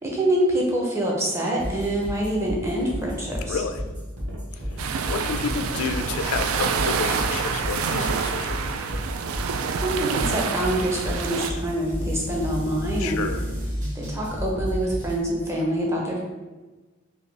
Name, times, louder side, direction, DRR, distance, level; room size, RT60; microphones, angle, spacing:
voice 1, 0.0-3.6 9.8-13.2 13.9-16.2, right 1 dB, 15° right, -3 dB, 0.7 m, -25 dB
sound 1, 1.6-15.2, equal, 35° right, 1.1 m, -32 dB
voice 2, 3.5-3.8 4.7-8.9 13.0-13.4, left 5 dB, 90° left, 8 dB, 0.3 m, -30 dB
sound 2, 3.8-10.3, right 1 dB, 65° right, 0.9 m, -43 dB
sound 3, 4.8-11.5, right 6 dB, 85° right, 0.3 m, -27 dB
4.8 x 2.3 x 3.3 m, 1.2 s
head